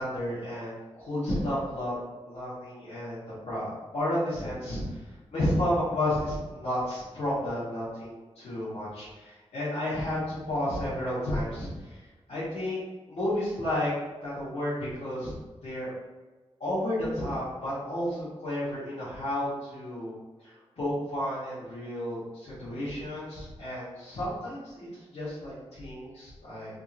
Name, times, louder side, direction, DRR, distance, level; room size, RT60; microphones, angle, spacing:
voice 1, 0.0-2.0 2.2-5.0 5.3-12.0 12.3-12.8 13.1-13.9 14.2-15.3 15.6-15.9 16.6-20.1 20.4-26.8, left 1 dB, 90° left, -11 dB, 1.4 m, -32 dB
3.6 x 2.7 x 2.6 m, 1.2 s
wide cardioid pair, 75°, 10 cm